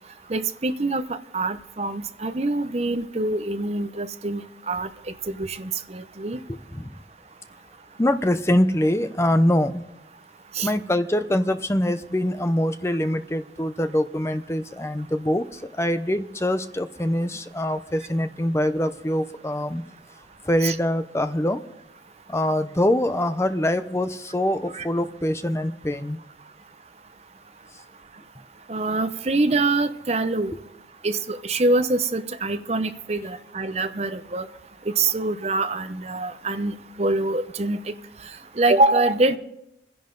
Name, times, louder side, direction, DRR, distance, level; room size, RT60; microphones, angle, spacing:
voice 1, 0.3-4.4 4.7-4.9 5.3-6.4 10.5-10.7 20.6-20.7 24.7-24.9 28.7-30.5 31.0-34.5 34.9-37.8 38.6-39.4, right 2 dB, 35° right, 9 dB, 0.7 m, -24 dB
voice 2, 6.5-7.0 8.0-9.8 10.6-19.8 20.4-21.6 22.3-26.2, left 1 dB, 15° left, 10 dB, 0.7 m, -24 dB
26.5 x 10.5 x 3.9 m, 0.85 s
head